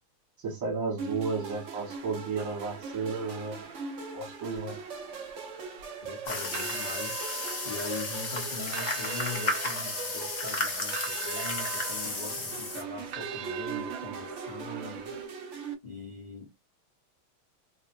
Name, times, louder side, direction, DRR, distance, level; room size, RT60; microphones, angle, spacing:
voice 1, 0.4-3.6 4.1-4.8, right 4 dB, 40° right, 1.8 m, -33 dB
sound 1, 1.0-15.7, right 5 dB, 90° right, 0.6 m, -40 dB
sound 2, 1.5-15.3, right 9 dB, 75° right, 1.2 m, -43 dB
voice 2, 6.0-7.2 7.6-15.1 15.8-16.5, left 3 dB, 40° left, 0.6 m, -41 dB
sound 3, 6.3-12.8, left 2 dB, 75° left, 0.4 m, -33 dB
3.4 x 2.7 x 2.6 m
omnidirectional pair, 2.3 m